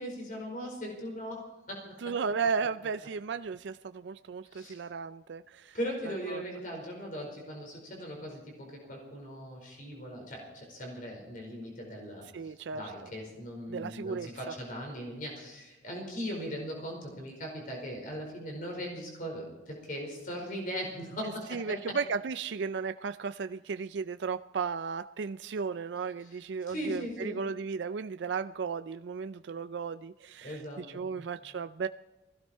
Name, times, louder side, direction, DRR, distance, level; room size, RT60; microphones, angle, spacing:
voice 1, 0.0-2.2 4.5-4.8 5.7-22.0 26.2-26.4 26.7-27.4 30.4-31.1, equal, 45° left, 1 dB, 4.9 m, -39 dB
voice 2, 2.0-5.8 6.1-6.4 12.3-12.8 13.7-14.3 21.5-31.9, right 5 dB, 70° right, 11 dB, 0.4 m, -35 dB
20.5 x 16.0 x 4.4 m, 1.1 s
head